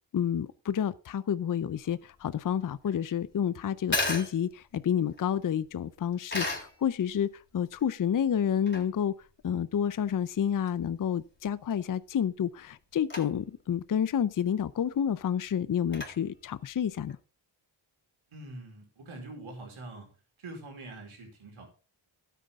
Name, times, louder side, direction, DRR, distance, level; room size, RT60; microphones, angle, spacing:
voice 1, 0.1-9.1 9.4-17.2, left 8 dB, 45° left, 0.6 m, -29 dB
sound 1, 1.7-17.2, left 2 dB, 20° left, 3.9 m, -39 dB
voice 2, 18.3-20.1 20.4-21.6, right 2 dB, 85° right, 4.7 m, -44 dB
12.5 x 9.2 x 3.6 m
cardioid pair, 65°, 48 cm